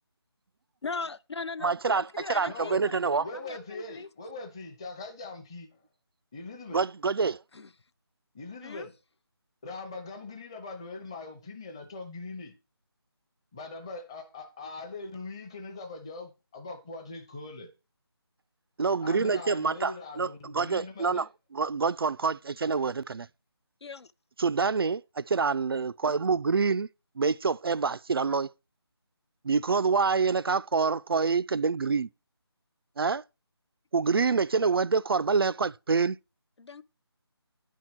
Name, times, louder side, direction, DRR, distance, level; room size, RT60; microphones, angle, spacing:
voice 1, 0.8-4.1 7.5-7.7 8.6-8.9 23.8-24.1 36.6-36.8, left 4 dB, 80° left, 0.6 m, -39 dB
voice 2, 1.6-3.3 6.7-7.4 18.8-21.3 21.5-23.3 24.4-26.9 27.2-28.5 29.4-32.1 33.0-33.2 33.9-36.2, right 5 dB, 60° right, 0.4 m, -26 dB
voice 3, 2.5-2.8 3.2-5.8 6.3-6.8 8.3-8.9 9.6-12.5 13.5-17.7 19.0-21.3, left 3 dB, 10° left, 0.7 m, -41 dB
10.5 x 4.6 x 5.9 m
figure-of-eight pair, 170°, 14 cm